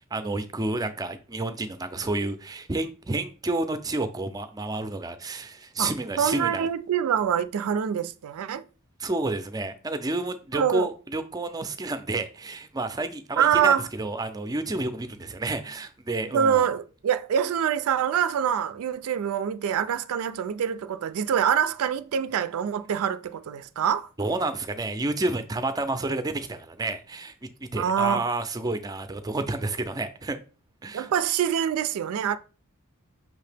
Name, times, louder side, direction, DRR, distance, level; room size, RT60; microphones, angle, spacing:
voice 1, 0.1-6.7 9.0-16.7 24.2-30.4 30.8-31.1, right 2 dB, 20° right, 0.4 m, -30 dB
voice 2, 6.2-8.6 10.5-10.9 13.4-13.9 16.3-24.1 27.7-28.3 30.9-32.4, right 8 dB, 80° right, 0.3 m, -25 dB
5.7 x 2.8 x 3.3 m
head